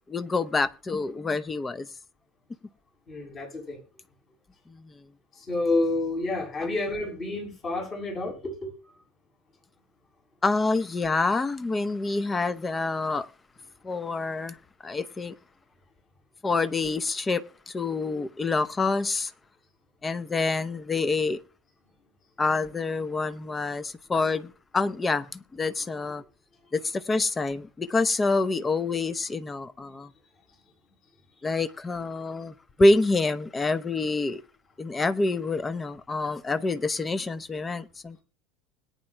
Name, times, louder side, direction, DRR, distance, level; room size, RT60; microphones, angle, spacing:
voice 1, 0.1-1.9 4.7-4.9 6.6-6.7 10.4-13.3 13.8-14.6 14.8-15.3 16.4-19.3 20.0-21.4 22.4-26.2 26.7-30.1 31.4-34.4 34.8-38.2, left 3 dB, 20° left, 0.8 m, -27 dB
voice 2, 3.1-3.8 5.5-8.7, left 2 dB, 35° left, 7.2 m, -29 dB
21.0 x 9.7 x 2.3 m
figure-of-eight pair, 75°, 0 cm